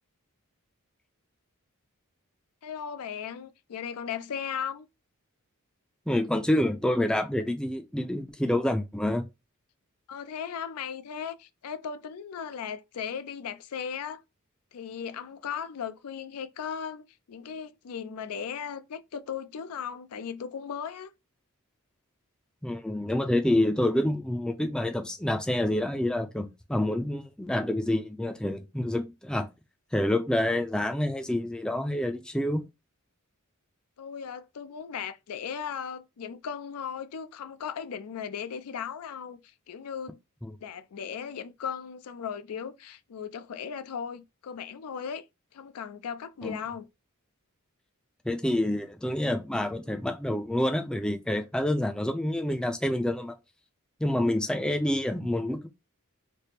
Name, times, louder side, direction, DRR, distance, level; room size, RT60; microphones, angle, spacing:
voice 1, 2.6-4.9 10.1-14.2 14.7-21.1 34.0-40.2 40.6-45.3 45.5-46.9, left 7 dB, 80° left, 0.4 m, -37 dB
voice 2, 6.1-9.3 22.6-29.5 29.9-32.7 40.4-40.6 46.4-46.6 48.2-53.4 54.0-55.7, left 1 dB, 5° left, 0.4 m, -27 dB
3.3 x 2.0 x 4.2 m
head